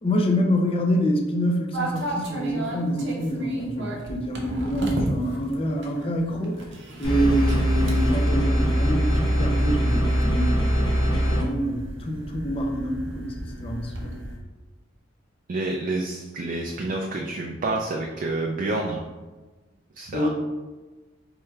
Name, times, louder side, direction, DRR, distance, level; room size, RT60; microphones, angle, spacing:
voice 1, 0.0-6.6 7.0-14.2 20.1-20.3, equal, 30° left, 2 dB, 0.5 m, -26 dB
sound 1, 1.7-14.4, right 1 dB, 65° right, 0.7 m, -35 dB
sound 2, 7.0-11.4, equal, 85° left, 1.2 m, -22 dB
voice 2, 15.5-19.1 20.0-20.3, right 2 dB, 40° right, 1 dB, 0.3 m, -28 dB
4.6 x 3.1 x 2.3 m, 1.2 s
head